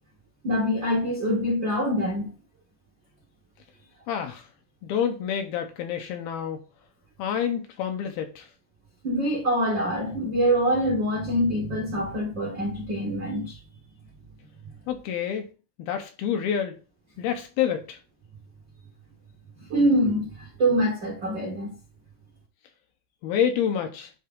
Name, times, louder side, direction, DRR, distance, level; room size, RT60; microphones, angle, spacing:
voice 1, 0.4-2.3 9.0-13.6 19.6-21.8, equal, 65° right, 1.1 m, -25 dB
voice 2, 4.1-4.5 4.8-6.7 7.2-8.5 14.9-15.5 15.8-16.8 17.2-18.0 23.2-24.1, left 8 dB, 75° left, 2.6 m, -28 dB
10.5 x 3.6 x 3.6 m
omnidirectional pair, 4.8 m